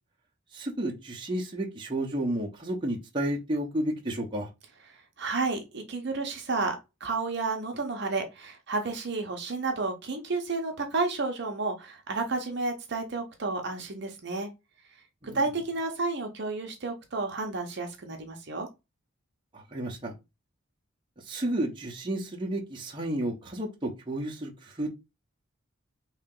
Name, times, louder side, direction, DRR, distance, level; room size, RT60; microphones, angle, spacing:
voice 1, 0.5-4.5 15.2-15.4 19.5-20.1 21.2-24.9, right 1 dB, 20° right, 0.8 m, -32 dB
voice 2, 4.9-6.8 7.0-14.5 15.3-18.7, right 3 dB, 55° right, 0.7 m, -31 dB
3.2 x 2.8 x 3.8 m
head